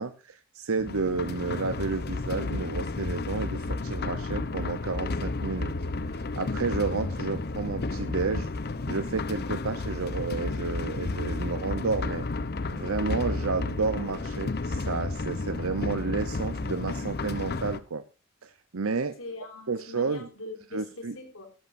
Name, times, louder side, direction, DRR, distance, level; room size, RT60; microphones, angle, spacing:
voice 1, 0.0-5.7 6.0-8.5 8.9-12.2 12.7-18.0 18.4-19.1 19.7-20.3 20.7-21.2, right 4 dB, 85° right, 0.9 m, -31 dB
sound 1, 0.7-17.8, left 3 dB, 50° left, 0.8 m, -32 dB
voice 2, 19.2-21.5, left 2 dB, 70° left, 3.7 m, -42 dB
17.0 x 13.0 x 2.7 m
head